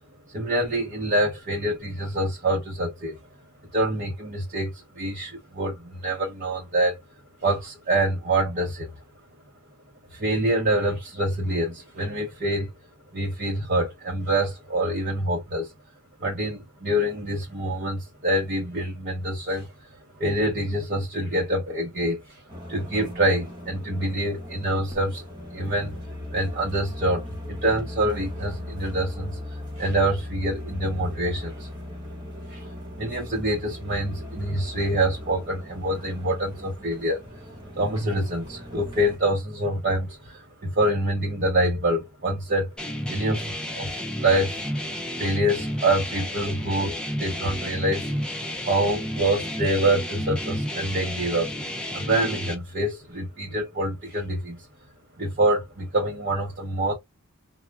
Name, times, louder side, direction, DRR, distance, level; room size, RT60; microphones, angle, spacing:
voice 1, 0.3-3.2 3.7-7.0 7.4-8.9 10.1-12.7 13.1-15.7 16.2-19.7 20.1-22.4 22.7-25.2 25.5-26.0 26.3-31.7 32.5-37.2 37.7-42.7 43.1-44.6 45.2-48.1 48.7-51.5 51.9-54.6 55.2-56.9, right 1 dB, 40° right, 0.7 m, -26 dB
sound 1, 22.5-39.2, left 1 dB, 20° right, 1.0 m, -38 dB
sound 2, 42.8-52.6, equal, 5° left, 0.4 m, -31 dB
2.2 x 2.1 x 3.1 m
head